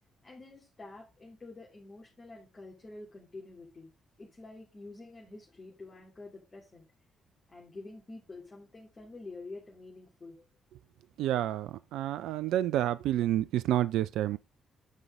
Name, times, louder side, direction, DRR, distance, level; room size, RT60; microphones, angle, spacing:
voice 1, 0.2-3.9 4.2-6.8 7.5-10.5, left 2 dB, 35° left, 3.0 m, -48 dB
voice 2, 11.2-14.4, right 12 dB, 70° right, 0.3 m, -29 dB
9.7 x 5.4 x 3.5 m
hypercardioid pair, 45°, 0 cm